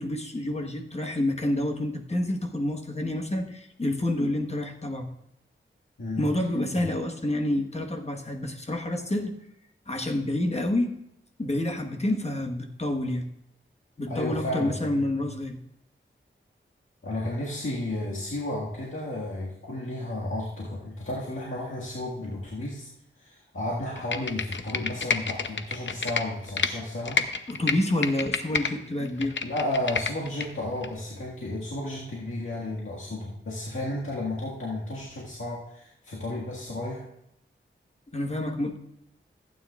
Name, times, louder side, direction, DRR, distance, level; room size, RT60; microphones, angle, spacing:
voice 1, 0.0-5.1 6.2-9.4 9.9-11.0 11.4-13.3 14.0-15.6 27.5-29.4 38.1-38.8, left 1 dB, 30° left, 3 dB, 1.3 m, -28 dB
voice 2, 14.1-15.1 17.0-22.9 23.2-27.2 29.4-37.0, left 1 dB, 85° left, -6 dB, 1.8 m, -33 dB
Computer keyboard, 24.0-26.7 27.1-28.7 29.1-30.5 30.8-30.9, left 5 dB, 65° left, 0.7 m, -29 dB
15.0 x 9.0 x 2.4 m, 0.80 s
wide cardioid pair, 65°, 21 cm